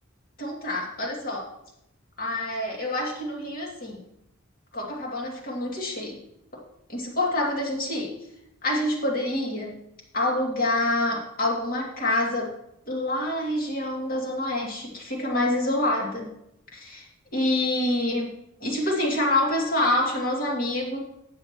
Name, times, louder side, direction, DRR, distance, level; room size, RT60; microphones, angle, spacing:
voice 1, 0.4-1.5 2.2-4.0 4.7-6.2 6.5-6.6 6.9-8.1 8.6-9.8 10.1-12.5 12.9-16.3 16.7-21.0, left 1 dB, 45° left, -2 dB, 2.5 m, -27 dB
13.0 x 8.2 x 3.0 m, 0.81 s
head